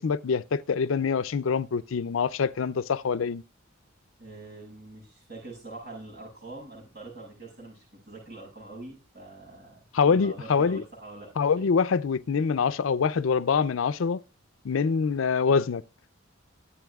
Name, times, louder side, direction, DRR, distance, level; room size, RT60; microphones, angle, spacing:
voice 1, 0.0-3.4 9.9-10.8 11.4-14.2 14.6-15.8, left 5 dB, 90° left, 0.5 m, -25 dB
voice 2, 4.2-11.3 11.6-11.7, right 2 dB, 55° right, 6.8 m, -44 dB
22.5 x 8.4 x 2.3 m
head